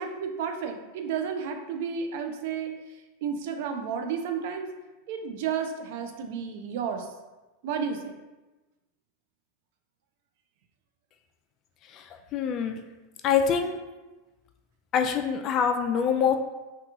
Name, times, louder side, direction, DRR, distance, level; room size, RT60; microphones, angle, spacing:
voice 1, 0.0-2.7 3.2-4.7 5.1-7.1 7.6-8.2, right 6 dB, 65° right, 5 dB, 0.4 m, -32 dB
voice 2, 11.9-12.8 13.2-13.8 14.9-16.3, left 7 dB, 40° left, 6 dB, 0.3 m, -25 dB
2.9 x 2.3 x 3.5 m, 1.1 s
supercardioid pair, 130°, 0 cm